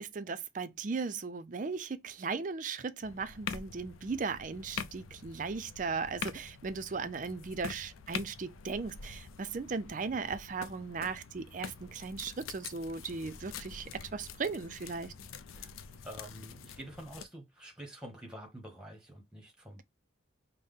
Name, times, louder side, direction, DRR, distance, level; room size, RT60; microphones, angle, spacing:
voice 1, 0.0-15.1, right 4 dB, 40° right, 0.4 m, -37 dB
sound 1, 3.0-17.3, left 6 dB, 90° left, 0.5 m, -45 dB
voice 2, 15.1-15.7 16.0-19.8, right 1 dB, 5° right, 0.9 m, -48 dB
5.4 x 2.1 x 3.5 m
head